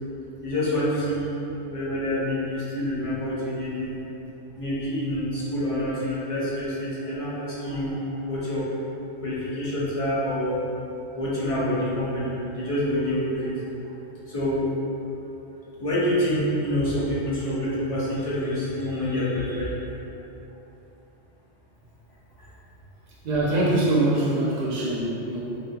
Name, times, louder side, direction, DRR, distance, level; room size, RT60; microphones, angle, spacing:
voice 1, 0.4-1.3 1.7-4.0 4.5-8.6 9.2-10.6 11.1-13.5 14.3-14.7 15.8-19.7 22.4-22.5, left 1 dB, 40° left, -9 dB, 0.6 m, -27 dB
voice 2, 23.2-25.6, right 2 dB, 90° right, -6 dB, 0.9 m, -23 dB
3.3 x 2.7 x 2.3 m, 3.0 s
omnidirectional pair, 1.1 m